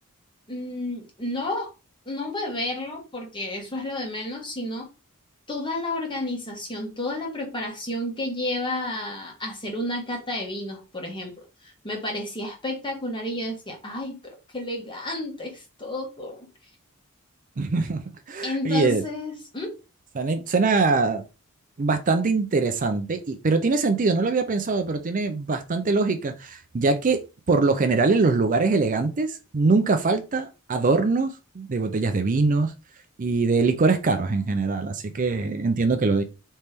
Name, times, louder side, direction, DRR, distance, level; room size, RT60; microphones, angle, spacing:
voice 1, 0.5-1.7 2.0-4.9 5.5-11.3 11.6-14.2 14.5-16.5 18.4-19.7, left 1 dB, 20° left, 1.4 m, -31 dB
voice 2, 17.6-18.0 18.3-19.0 20.2-21.2 21.8-27.2 27.5-32.7 33.2-36.2, right 3 dB, 35° right, 0.5 m, -23 dB
4.3 x 3.2 x 3.4 m
head